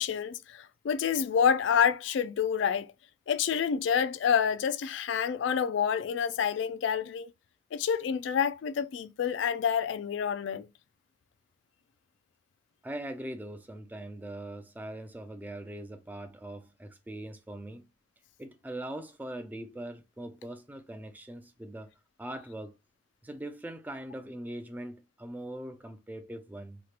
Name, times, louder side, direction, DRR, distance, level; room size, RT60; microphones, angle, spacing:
voice 1, 0.0-2.9 3.3-7.3 7.7-10.7, left 7 dB, 70° left, 0.3 m, -28 dB
voice 2, 12.8-17.8 18.4-21.9 22.2-22.8 23.2-26.8, right 1 dB, 10° right, 0.3 m, -41 dB
2.9 x 2.4 x 3.2 m
head